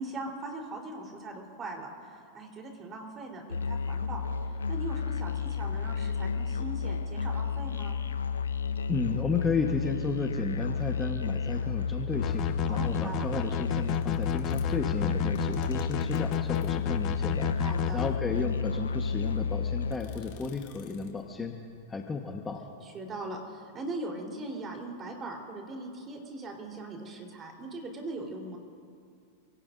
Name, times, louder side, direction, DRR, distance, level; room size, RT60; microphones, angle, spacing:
voice 1, 0.0-4.2 4.7-8.0 12.7-13.2 17.5-18.0 22.8-28.6, right 2 dB, 30° right, 1 dB, 4.1 m, -40 dB
Musical instrument, 3.5-20.0, left 5 dB, 90° left, 0.9 m, -31 dB
voice 2, 8.9-17.5 17.9-21.5 21.9-22.6, left 4 dB, 20° left, 2 dB, 1.4 m, -33 dB
sound 1, 12.2-18.1, left 8 dB, 40° left, 0.9 m, -32 dB
sound 2, 13.8-16.9 17.7-18.2 18.8-18.9 19.2-21.4 21.7-21.8, left 8 dB, 60° left, 2.7 m, -50 dB
28.5 x 17.5 x 2.7 m, 2.3 s
hypercardioid pair, 105°, 0 cm